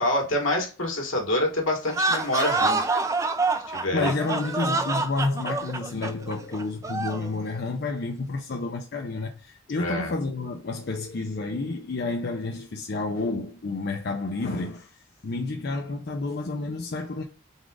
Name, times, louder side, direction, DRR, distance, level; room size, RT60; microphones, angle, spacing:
voice 1, 0.0-2.8 3.7-4.1 9.8-10.1, left 1 dB, 80° left, 1.6 m, -26 dB
sound 1, 1.8-7.3, right 3 dB, 15° right, 0.3 m, -27 dB
voice 2, 3.9-17.2, left 3 dB, 50° left, 0.5 m, -30 dB
4.0 x 2.4 x 4.7 m
head